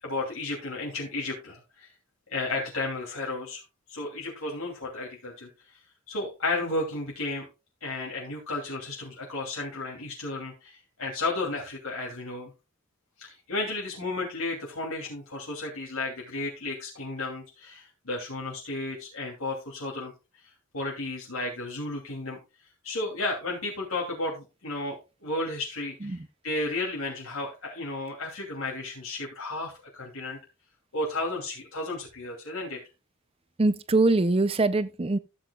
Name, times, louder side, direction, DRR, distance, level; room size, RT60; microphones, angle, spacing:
voice 1, 0.0-1.9 2.3-3.6 3.9-5.8 6.1-7.5 7.8-12.5 13.2-20.1 20.4-22.4 22.8-26.1 26.4-30.4 30.9-32.8, left 2 dB, 90° left, 2.9 m, -33 dB
voice 2, 33.6-35.2, right 2 dB, 25° right, 0.5 m, -23 dB
14.0 x 7.9 x 2.3 m
head